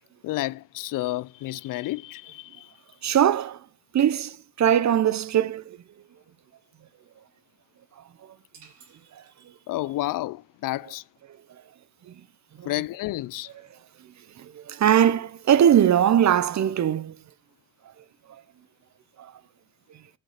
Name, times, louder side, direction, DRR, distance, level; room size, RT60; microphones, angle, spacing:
voice 1, 0.2-2.7 9.7-11.0 12.6-13.5, left 17 dB, 65° left, 0.6 m, -30 dB
voice 2, 3.0-3.6 3.9-5.8 9.1-9.2 12.1-12.2 12.6-12.7 14.4-17.1 19.2-19.3, right 10 dB, 50° right, 1.0 m, -21 dB
sound 1, 8.5-10.0, right 6 dB, 70° right, 4.6 m, -56 dB
16.5 x 7.6 x 5.0 m
hypercardioid pair, 50°, 35 cm